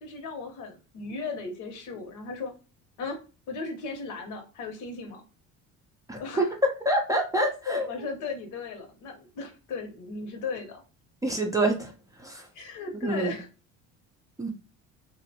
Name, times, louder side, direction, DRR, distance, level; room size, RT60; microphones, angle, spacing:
voice 1, 0.0-2.5 3.0-3.2 3.5-5.2 6.2-6.6 7.7-10.8 12.5-13.5, left 4 dB, 70° left, 5 dB, 0.9 m, -36 dB
voice 2, 6.1-7.9 11.2-11.9 12.2-12.5 13.0-13.3 14.4-14.5, right 1 dB, 10° right, 1 dB, 0.4 m, -26 dB
2.5 x 2.1 x 2.7 m, 0.33 s
cardioid pair, 110°, 32 cm